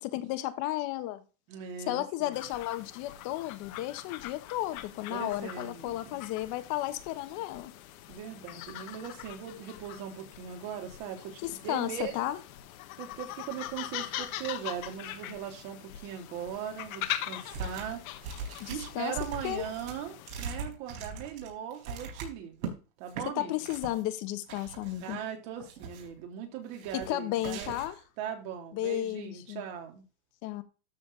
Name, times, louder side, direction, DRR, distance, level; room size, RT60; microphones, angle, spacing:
voice 1, 0.0-1.2 1.9-7.7 11.4-12.4 18.6-19.1 19.4-19.7 23.4-25.2 26.9-27.9 28.7-29.6 30.4-30.6, left 15 dB, 45° left, 1.3 m, -33 dB
voice 2, 1.5-2.4 5.1-6.2 8.1-12.3 13.0-18.0 18.7-23.7 25.0-27.7 28.2-30.0, right 9 dB, 55° right, 3.4 m, -39 dB
sound 1, 2.3-20.4, left 13 dB, 70° left, 1.5 m, -42 dB
sound 2, 17.5-18.0 18.2-22.7 23.1-23.3 23.6-24.0 24.5-25.2 25.6-26.2 26.7-27.1 27.4-28.0, right 4 dB, 70° right, 4.3 m, -40 dB
13.0 x 4.5 x 4.0 m
supercardioid pair, 160°, 43 cm